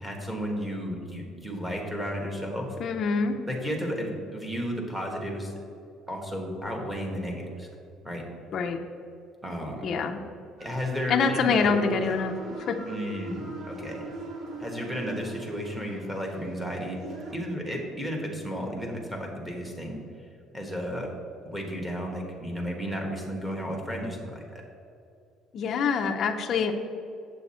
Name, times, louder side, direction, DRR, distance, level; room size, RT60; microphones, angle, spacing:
voice 1, 0.0-2.8 3.5-5.5 6.1-7.7 8.0-8.2 9.4-9.8 10.6-12.1 12.9-14.0 14.6-17.0 17.3-20.0 20.5-21.1 21.4-24.6, equal, 5° right, -1 dB, 1.3 m, -33 dB
voice 2, 2.8-3.4 8.5-8.8 9.8-10.2 11.1-12.3 12.7-12.8 25.5-26.7, left 5 dB, 40° left, 3 dB, 0.5 m, -25 dB
sound 1, 10.6-17.4, right 3 dB, 40° right, 0.9 m, -40 dB
8.2 x 7.6 x 4.2 m, 2.6 s
cardioid pair, 175°, 0 cm